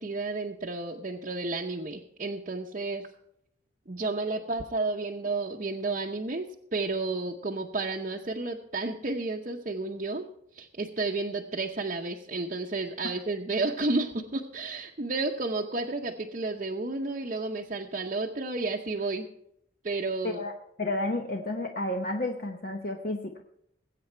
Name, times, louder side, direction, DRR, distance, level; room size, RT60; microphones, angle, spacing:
voice 1, 0.0-3.1 3.9-10.2 10.5-19.3 19.8-20.4, right 3 dB, 40° right, -1 dB, 0.8 m, -31 dB
voice 2, 20.8-23.4, left 2 dB, 50° left, 3 dB, 0.9 m, -31 dB
19.5 x 8.4 x 4.5 m, 0.76 s
head